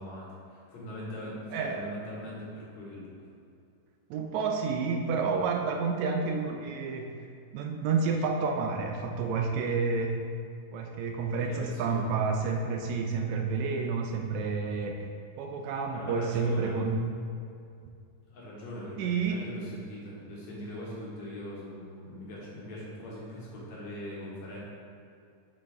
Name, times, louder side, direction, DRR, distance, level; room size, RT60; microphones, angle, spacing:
voice 1, 0.0-3.0 11.3-12.1 15.9-16.7 18.3-24.6, left 1 dB, 60° left, -6 dB, 2.6 m, -41 dB
voice 2, 1.5-1.8 4.1-7.1 7.5-10.2 10.7-15.1 15.4-17.1 19.0-19.4, right 4 dB, 80° right, 3 dB, 1.6 m, -30 dB
7.6 x 5.5 x 3.5 m, 2.4 s
omnidirectional pair, 3.8 m